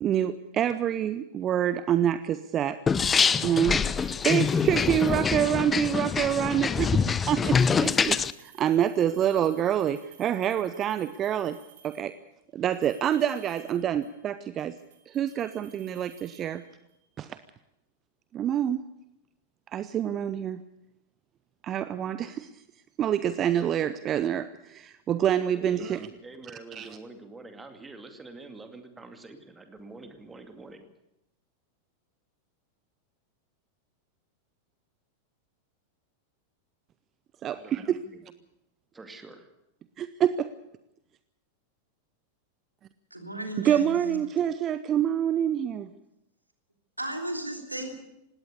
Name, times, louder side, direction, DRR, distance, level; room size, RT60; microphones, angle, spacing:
voice 1, 0.0-2.8 3.4-11.6 11.8-12.1 12.5-14.8 15.1-16.6 17.2-17.4 18.3-18.8 19.7-20.6 21.6-22.6 23.0-26.1 26.7-26.9 37.4-38.0 40.0-40.5 43.6-45.9, right 10 dB, 30° right, 13 dB, 0.7 m, -27 dB
sound 1, 2.9-8.3, left 6 dB, 20° left, 0.6 m, -25 dB
sound 2, 4.0-5.7 7.5-12.2 12.7-14.3 14.6-17.1, right 8 dB, 60° right, 3.1 m, -56 dB
voice 2, 26.2-30.9 37.4-38.3 38.9-39.5, right 3 dB, 15° right, 7 dB, 2.4 m, -46 dB
voice 3, 43.1-44.2 47.0-47.9, right 1 dB, 85° right, 4 dB, 3.2 m, -35 dB
19.0 x 17.0 x 8.3 m, 0.87 s
figure-of-eight pair, 90°, 0 cm